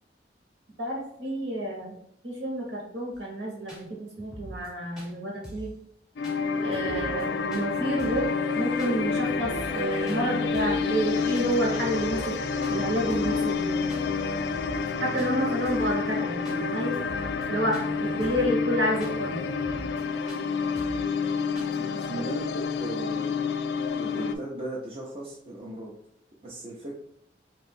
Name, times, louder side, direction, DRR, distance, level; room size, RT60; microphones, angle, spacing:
voice 1, 0.8-1.9 2.2-5.7 6.6-8.3 8.5-12.3 12.7-13.7 15.0-17.0 17.5-19.4, right 1 dB, 80° right, -2 dB, 1.5 m, -29 dB
sound 1, 3.1-3.2 3.7-3.8 4.2-4.7 5.0-5.1 5.4-5.7 6.2-6.4 6.7-7.2 7.5-7.7 8.0-8.3 8.8-8.9 9.3-9.8 10.1-10.2 10.5-10.9 11.3-11.6 11.8-12.4 12.6-12.8 13.1-13.4 13.9-14.0 14.4-14.9 15.2-15.3 15.6-16.0 16.4-16.6 16.9-17.5 17.7-17.9 18.2-18.5 19.0-19.1 19.5-20.0 20.3-20.4 20.8-21.1 21.6-21.8, right 1 dB, 5° right, 1.0 m, -43 dB
sound 2, 6.2-24.3, left 5 dB, 65° left, 0.3 m, -29 dB
sound 3, 6.5-19.8, right 1 dB, 55° right, 1.1 m, -40 dB
voice 2, 21.7-23.6 24.0-25.9 26.4-26.9, right 1 dB, 35° right, -5 dB, 0.6 m, -37 dB
3.1 x 2.7 x 4.4 m, 0.74 s
head